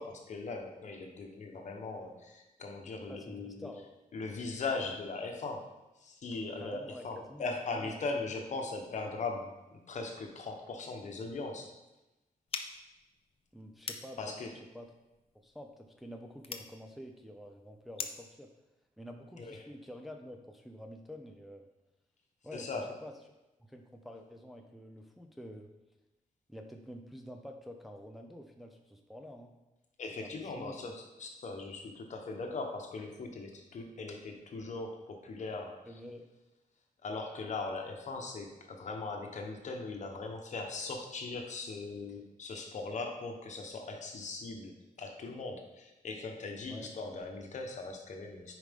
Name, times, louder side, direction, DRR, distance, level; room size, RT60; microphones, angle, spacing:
voice 1, 0.0-3.7 4.1-5.7 6.0-11.7 14.2-14.5 19.4-19.7 22.5-22.9 30.0-35.9 37.0-48.6, left 3 dB, 55° left, 3 dB, 1.2 m, -39 dB
voice 2, 3.1-3.9 6.6-8.0 8.3-8.4 13.5-14.9 15.4-18.5 19.0-21.7 22.4-23.1 23.6-25.7 26.5-29.5 30.2-30.8 35.9-36.2 46.7-46.9, equal, ahead, 3 dB, 0.6 m, -48 dB
sound 1, 12.5-18.3, left 5 dB, 40° left, 0.7 m, -45 dB
9.7 x 4.9 x 3.7 m, 1.0 s
wide cardioid pair, 125°, 14 cm